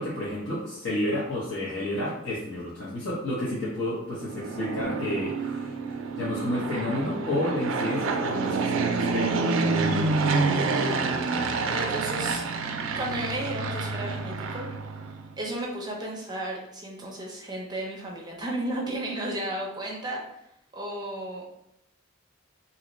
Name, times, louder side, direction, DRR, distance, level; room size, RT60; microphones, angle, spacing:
voice 1, 0.0-9.4, left 1 dB, 65° left, -9 dB, 0.8 m, -31 dB
Fixed-wing aircraft airplane, 4.2-15.3, right 3 dB, 85° right, 0.4 m, -28 dB
voice 2, 11.7-12.4 13.0-14.6 15.4-20.2 20.7-21.5, right 1 dB, 20° right, -1 dB, 0.6 m, -33 dB
2.7 x 2.1 x 3.8 m, 0.81 s
head